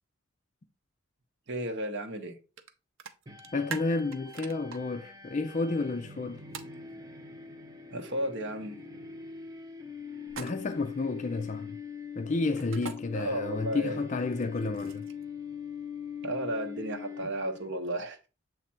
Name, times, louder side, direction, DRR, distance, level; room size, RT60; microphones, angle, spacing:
voice 1, 1.5-2.4 7.9-8.8 13.1-14.0 16.2-18.2, right 1 dB, 60° right, 1.1 m, -33 dB
sound 1, 2.6-2.7 3.0-4.8 6.5-6.7 10.3-10.8 12.6-13.0 14.3-15.2, right 5 dB, 75° right, 0.7 m, -41 dB
sound 2, 3.3-17.7, left 6 dB, 15° right, 0.7 m, -43 dB
voice 2, 3.5-6.4 10.4-11.8 12.2-15.1, left 3 dB, 35° left, 0.4 m, -31 dB
7.3 x 3.3 x 4.2 m
head